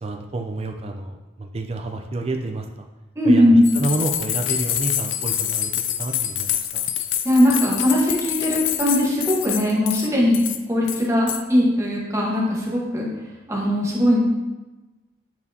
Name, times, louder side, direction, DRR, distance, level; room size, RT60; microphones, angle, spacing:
voice 1, 0.0-2.9 3.2-6.9, right 2 dB, 30° right, 4 dB, 0.4 m, -29 dB
voice 2, 3.2-3.7 7.2-10.4 10.7-13.1 13.5-14.2, left 1 dB, 15° right, -4 dB, 1.2 m, -19 dB
sound 1, 3.6-10.1 10.3-10.6 10.9-11.4, left 10 dB, 75° left, 0.4 m, -26 dB
8.1 x 4.4 x 2.7 m, 1.1 s
head